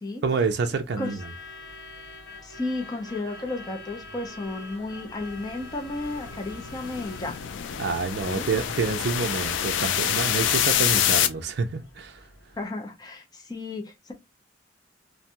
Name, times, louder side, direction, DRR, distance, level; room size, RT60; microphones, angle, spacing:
voice 1, 0.2-1.3 7.8-12.3, right 4 dB, 60° right, 0.4 m, -28 dB
Truck / Alarm, 0.7-12.7, left 2 dB, 60° left, 1.3 m, -45 dB
voice 2, 2.4-7.4 8.3-8.4 12.6-14.1, left 2 dB, 20° left, 0.5 m, -33 dB
sound 1, 5.3-11.3, left 10 dB, 90° left, 0.3 m, -26 dB
2.5 x 2.2 x 2.8 m
head